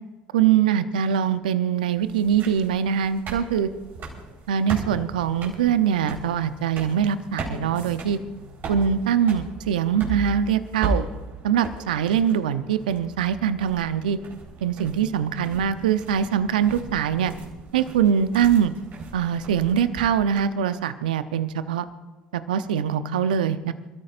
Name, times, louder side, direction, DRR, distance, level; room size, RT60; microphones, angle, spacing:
voice 1, 0.3-3.7 4.5-8.2 8.7-11.1 11.4-14.2 14.6-17.3 17.7-18.7 19.1-21.9 22.3-23.7, right 8 dB, 80° right, 12 dB, 0.7 m, -23 dB
sound 1, 2.0-20.4, right 3 dB, 50° right, 4.2 m, -37 dB
28.0 x 13.5 x 2.6 m, 1.2 s
hypercardioid pair, 65°, 4 cm